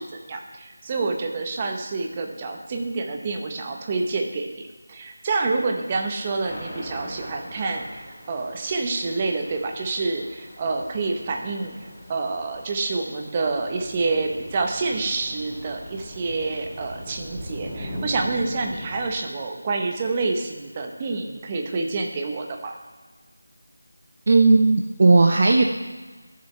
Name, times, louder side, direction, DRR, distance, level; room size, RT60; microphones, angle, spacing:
voice 1, 0.0-4.6 4.9-11.8 12.1-22.8, right 3 dB, 20° right, 3 dB, 0.9 m, -27 dB
Thunder / Rain, 5.8-19.1, equal, 5° right, 2.9 m, -40 dB
voice 2, 24.3-25.6, right 3 dB, 40° right, 3 dB, 0.6 m, -16 dB
13.0 x 7.3 x 3.3 m, 1.3 s
figure-of-eight pair, 165°, 0 cm